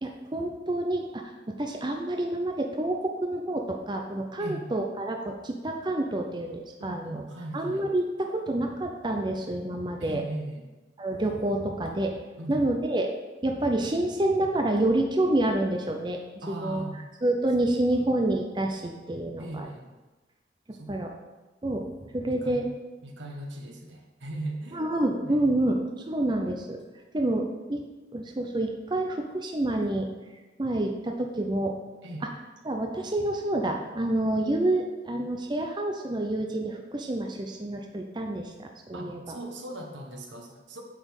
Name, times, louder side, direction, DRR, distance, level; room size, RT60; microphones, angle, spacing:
voice 1, 0.0-7.2 7.5-10.2 11.0-13.1 13.4-16.8 17.2-19.7 20.9-21.1 21.6-22.6 24.7-26.8 27.1-27.9 28.1-30.1 30.6-31.8 32.6-39.4, right 1 dB, 25° right, 3 dB, 0.6 m, -28 dB
voice 2, 6.8-7.9 10.0-10.7 12.4-12.7 16.4-17.0 17.9-18.0 19.4-19.9 20.7-20.9 22.2-22.6 23.0-24.8 25.2-25.4 32.0-32.3 38.9-40.8, right 1 dB, 80° right, 1 dB, 1.4 m, -38 dB
8.8 x 4.2 x 6.5 m, 1.2 s
head